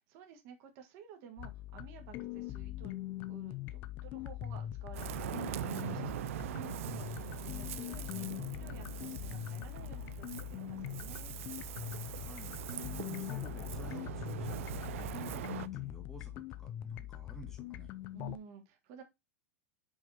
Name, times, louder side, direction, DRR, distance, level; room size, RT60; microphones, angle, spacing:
voice 1, 0.1-3.0 3.2-11.3 18.1-19.0, right 7 dB, 35° right, 1.5 m, -53 dB
sound 1, 1.4-18.4, left 13 dB, 30° left, 0.4 m, -42 dB
Ocean, 4.9-15.7, right 14 dB, 70° right, 0.4 m, -42 dB
voice 2, 11.9-17.9, left 1 dB, 5° left, 1.5 m, -52 dB
5.2 x 3.5 x 5.4 m
supercardioid pair, 165°, 8 cm